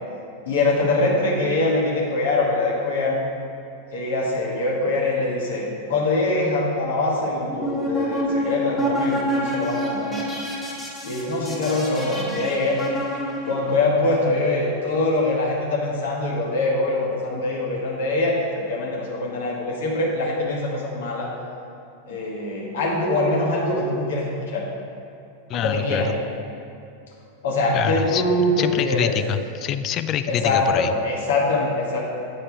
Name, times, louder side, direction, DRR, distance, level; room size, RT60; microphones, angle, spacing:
voice 1, 0.4-3.2 3.9-5.6 5.9-10.3 11.0-12.8 13.4-21.3 22.1-24.6 25.5-26.2 27.4-29.1 30.3-32.0, left 2 dB, 60° left, -3 dB, 1.5 m, -23 dB
sound 1, 7.5-13.8, equal, 15° left, 1.6 m, -27 dB
voice 2, 25.5-26.1 27.7-28.2 28.6-30.9, left 10 dB, 35° left, 11 dB, 0.3 m, -26 dB
8.6 x 4.3 x 4.7 m, 2.6 s
figure-of-eight pair, 90°, 0 cm